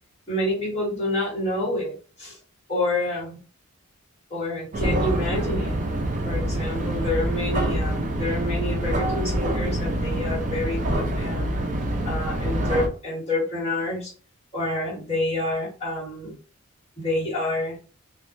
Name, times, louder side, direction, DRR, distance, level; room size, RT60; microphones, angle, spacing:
voice 1, 0.3-2.4 2.7-3.4 4.3-5.9 6.2-11.4 12.0-14.1 14.5-16.4 17.0-17.8, left 1 dB, 30° left, -5 dB, 1.1 m, -28 dB
sound 1, 4.7-12.9, right 1 dB, 35° right, 0.4 m, -26 dB
2.3 x 2.1 x 2.5 m, 0.37 s
head